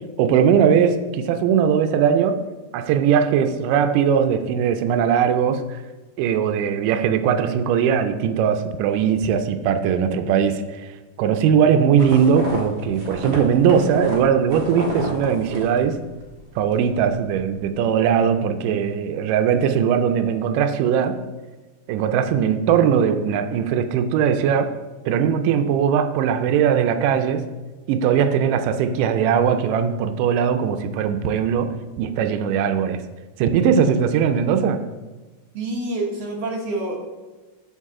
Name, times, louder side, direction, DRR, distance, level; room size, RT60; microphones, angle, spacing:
voice 1, 0.2-2.4 2.7-5.6 6.2-10.9 11.2-16.0 16.6-21.2 21.9-24.7 25.1-27.4 27.9-33.0 33.4-34.8, right 7 dB, 80° right, 7 dB, 2.1 m, -20 dB
sound 1, 12.0-16.3 16.6-17.1, right 2 dB, 45° right, 1.9 m, -30 dB
voice 2, 35.5-37.0, right 2 dB, 60° right, 0 dB, 1.8 m, -27 dB
12.0 x 4.6 x 3.7 m, 1.2 s
omnidirectional pair, 3.8 m